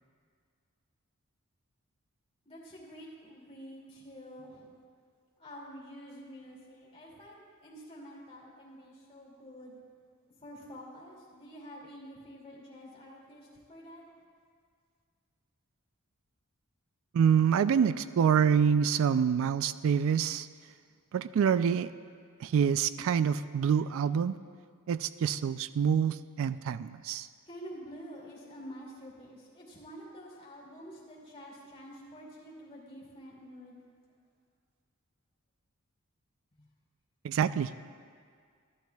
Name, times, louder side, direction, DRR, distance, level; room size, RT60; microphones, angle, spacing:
voice 1, 2.5-4.7 5.4-9.7 10.4-14.0 27.5-33.8 36.6-36.7, equal, 25° left, -4 dB, 2.5 m, -48 dB
voice 2, 17.1-20.5 21.1-21.9 22.4-24.4 24.9-27.3 37.2-37.7, right 7 dB, 65° right, 14 dB, 0.3 m, -26 dB
14.0 x 12.0 x 2.3 m, 2.1 s
head